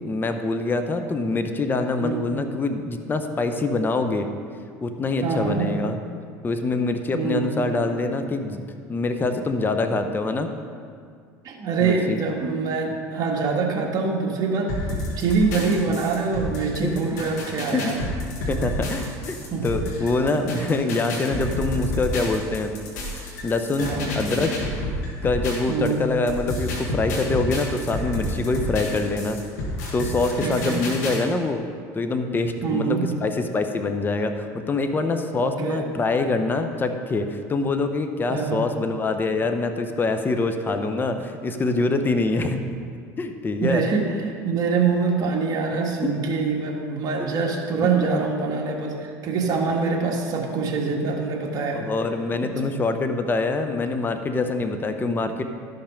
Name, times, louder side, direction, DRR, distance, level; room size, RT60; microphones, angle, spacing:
voice 1, 0.0-4.3 4.8-6.0 6.4-8.6 8.9-10.5 11.8-12.2 16.8-17.2 17.7-17.9 18.5-19.4 19.6-22.8 23.4-24.5 25.2-29.4 29.9-31.6 31.9-42.6 43.2-43.8 45.7-46.1 47.8-48.2 51.7-55.4, left 3 dB, 25° left, 7 dB, 0.8 m, -25 dB
voice 2, 5.2-5.8 7.1-7.9 11.4-18.0 18.6-18.8 19.5-19.6 20.4-20.7 23.8-24.2 25.7-26.0 30.4-30.8 32.6-33.0 35.4-35.9 38.3-38.6 43.6-51.8 52.4-52.7, right 4 dB, 50° right, 0 dB, 1.7 m, -25 dB
sound 1, 14.7-25.9 26.3-31.2, left 1 dB, 90° left, 1.8 m, -30 dB
12.0 x 5.7 x 5.1 m, 2.1 s
supercardioid pair, 95°, 9 cm